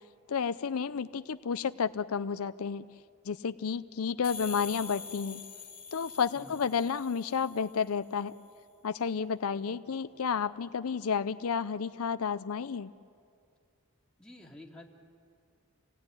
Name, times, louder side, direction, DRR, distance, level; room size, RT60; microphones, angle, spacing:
voice 1, 0.3-2.9 3.2-5.4 5.9-8.3 8.8-12.9, left 6 dB, 75° left, 13 dB, 0.5 m, -31 dB
sound 1, 4.2-7.8, left 6 dB, 25° left, 2.0 m, -44 dB
voice 2, 9.7-10.1 14.2-14.9, left 1 dB, 5° left, -2 dB, 2.5 m, -51 dB
28.5 x 17.5 x 9.8 m, 2.4 s
head